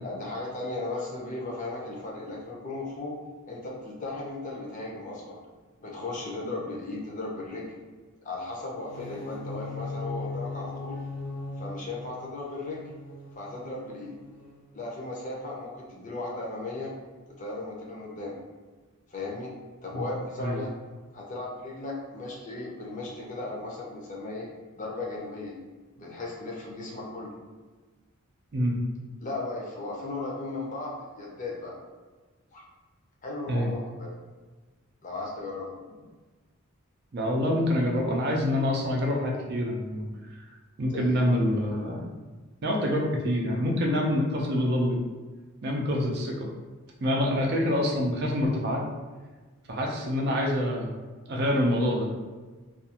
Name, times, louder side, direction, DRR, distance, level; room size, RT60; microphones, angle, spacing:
voice 1, 0.0-3.2 3.5-5.4 5.8-7.8 8.2-11.0 11.6-12.8 13.4-14.1 14.7-16.9 17.4-18.3 19.1-19.5 19.8-20.7 21.1-24.5 24.7-25.5 26.0-27.3 29.2-31.7 32.5-32.6 33.2-34.1 35.0-35.7 40.9-41.4, left 2 dB, 35° left, -3 dB, 0.6 m, -36 dB
sound 1, 8.7-14.7, left 2 dB, 85° left, 0.6 m, -39 dB
voice 2, 37.1-40.0 40.8-42.1 42.6-45.0 45.6-46.5 47.0-48.8 49.7-50.9 51.3-52.1, left 1 dB, 50° right, -1 dB, 0.4 m, -26 dB
2.4 x 2.3 x 2.8 m, 1.3 s
head